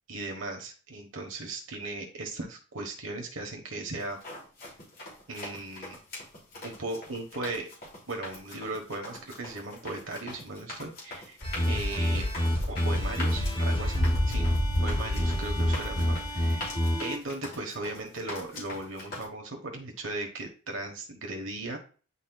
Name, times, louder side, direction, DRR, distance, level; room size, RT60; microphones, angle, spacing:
voice 1, 0.1-4.2 5.3-6.0 6.6-7.7 8.1-11.4 11.6-12.3 12.7-14.0 14.3-14.5 14.8-16.7 17.0-21.8, right 2 dB, 70° right, 2 dB, 1.2 m, -37 dB
sound 1, 4.0-19.2, left 2 dB, 45° left, 3.0 m, -43 dB
sound 2, 11.4-17.2, equal, 25° left, 0.9 m, -27 dB
10.0 x 4.2 x 2.3 m, 0.38 s
head